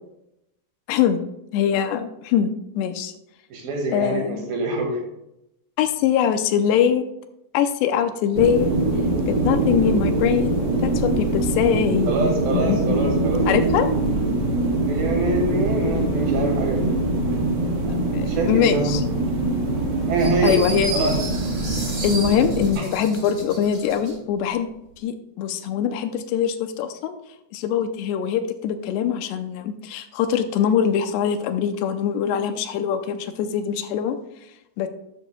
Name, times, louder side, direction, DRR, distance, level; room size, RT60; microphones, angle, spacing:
voice 1, 0.9-1.2 1.5-3.1 3.9-4.5 5.8-7.1 7.5-8.7 9.3-10.5 10.8-12.1 12.5-13.1 13.5-13.9 18.1-19.0 20.4-21.2 22.0-24.7 25.0-27.2 27.5-34.2 34.8-34.9, left 8 dB, 85° left, 8 dB, 2.8 m, -23 dB
voice 2, 3.5-5.0 12.1-13.5 14.9-17.0 18.3-19.0 20.1-20.7 20.9-21.2, right 2 dB, 65° right, 1 dB, 3.4 m, -25 dB
sound 1, 8.3-22.7, right 2 dB, 85° right, 0.9 m, -23 dB
sound 2, 20.2-24.1, right 2 dB, 25° right, 2.3 m, -33 dB
13.0 x 9.2 x 2.2 m, 0.85 s
omnidirectional pair, 4.9 m